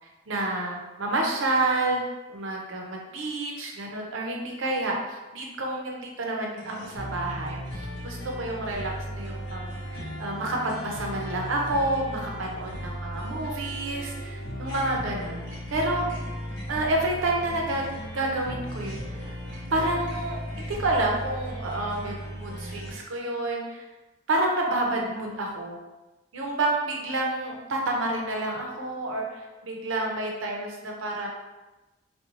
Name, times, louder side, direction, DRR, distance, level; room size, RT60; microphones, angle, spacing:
voice 1, 0.3-2.0 2.3-15.4 15.7-16.1 16.7-17.9 18.1-19.3 19.7-23.8 24.3-25.8 26.3-31.3, right 2 dB, 85° right, 0 dB, 0.5 m, -29 dB
sound 1, 6.6-22.9, equal, 55° left, 0.8 m, -36 dB
2.4 x 2.2 x 2.9 m, 1.1 s
head